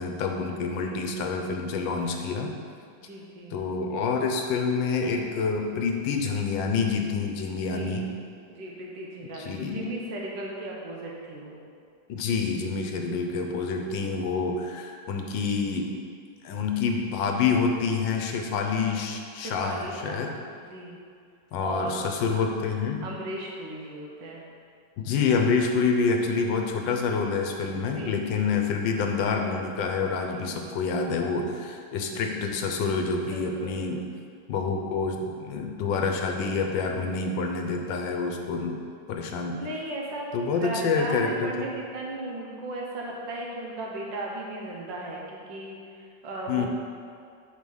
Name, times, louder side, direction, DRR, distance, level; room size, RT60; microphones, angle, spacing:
voice 1, 0.0-2.5 3.5-8.0 9.3-9.8 12.1-15.9 16.4-20.3 21.5-23.0 25.0-34.0 34.5-38.7 39.1-39.6 40.3-41.7 46.5-46.7, left 5 dB, 85° left, 3 dB, 1.4 m, -27 dB
voice 2, 3.0-3.6 7.5-8.1 8.5-11.6 19.4-20.2 20.7-21.0 21.6-22.0 23.0-24.5 27.9-28.4 30.3-30.5 32.0-32.4 33.3-33.8 39.5-40.3 40.6-46.7, right 2 dB, 75° right, -2 dB, 1.7 m, -36 dB
6.5 x 4.8 x 5.4 m, 2.2 s
omnidirectional pair, 2.0 m